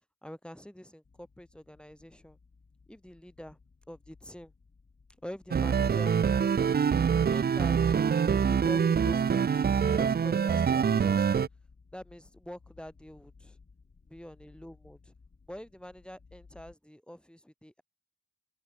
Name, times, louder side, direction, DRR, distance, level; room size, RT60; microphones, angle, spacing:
voice 1, 0.2-2.4 2.9-3.6 3.9-4.5 5.2-6.2 7.3-7.9 8.3-11.4 11.9-13.6 14.1-15.1 15.5-17.8, equal, 5° left, 4.4 m, -45 dB
sound 1, 1.0-16.8, left 4 dB, 40° left, 6.8 m, -60 dB
sound 2, 5.5-11.5, right 7 dB, 35° right, 0.4 m, -25 dB
open air
wide cardioid pair, 165°, 31 cm